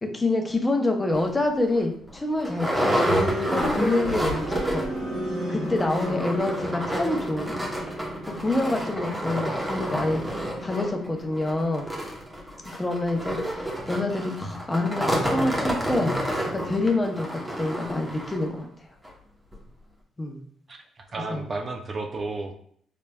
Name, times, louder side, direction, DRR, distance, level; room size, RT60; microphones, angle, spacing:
voice 1, 0.0-4.8 5.5-7.6 8.4-11.8 12.7-18.7 20.2-20.4 21.3-21.5, left 2 dB, 20° left, 3 dB, 0.7 m, -27 dB
sound 1, 1.1-1.3 1.8-1.9 2.1-5.0 5.3-5.4 5.7-18.5 19.0-19.1 19.5-19.6, equal, 15° right, 0.9 m, -29 dB
sound 2, 2.4-14.3, right 1 dB, 80° right, 1.2 m, -36 dB
voice 2, 20.7-22.6, right 3 dB, 40° right, 4 dB, 0.4 m, -33 dB
3.9 x 3.3 x 2.3 m, 0.63 s
cardioid pair, 90°, 0 cm